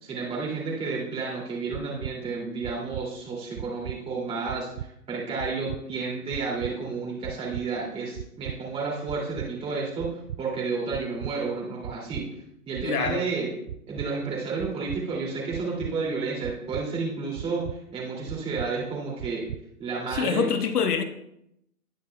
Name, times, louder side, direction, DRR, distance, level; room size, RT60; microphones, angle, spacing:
voice 1, 0.0-12.3 12.7-13.5 13.9-19.4 19.8-20.5, right 4 dB, 10° right, 2.6 m, -31 dB
sound 1, 1.7-2.1 2.6-3.1 3.6-4.0 4.5-4.9 5.4-5.8 6.3-6.7 7.2-7.7 8.2-8.6 9.1-9.5 10.0-10.4 10.9-11.3 11.8-12.3 12.8-13.2 13.7-14.1 14.6-15.0 15.5-15.9 16.4-16.9 17.4-17.8 18.3-18.7 19.2-19.6 20.1-20.2, right 11 dB, 65° right, 0.5 m, -36 dB
voice 2, 12.8-13.3 20.1-21.0, left 7 dB, 80° left, 1.3 m, -26 dB
18.5 x 9.3 x 2.3 m
hypercardioid pair, 160°, 45 cm